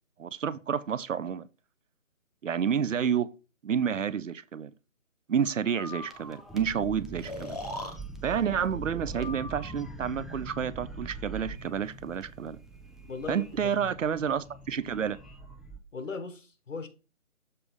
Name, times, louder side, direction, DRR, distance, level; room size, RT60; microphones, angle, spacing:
voice 1, 0.2-1.5 2.4-3.3 3.6-4.7 5.3-7.6 8.2-12.6 13.3-15.2, right 7 dB, 70° right, 0.6 m, -29 dB
Breathing, 5.7-6.4 7.2-8.0 9.1-9.9, left 1 dB, 30° left, 0.8 m, -40 dB
sound 1, 5.9-15.8, right 3 dB, ahead, 0.4 m, -43 dB
voice 2, 13.0-13.9 15.9-16.9, left 4 dB, 65° left, 1.3 m, -38 dB
6.9 x 3.4 x 5.1 m
hypercardioid pair, 175°, 41 cm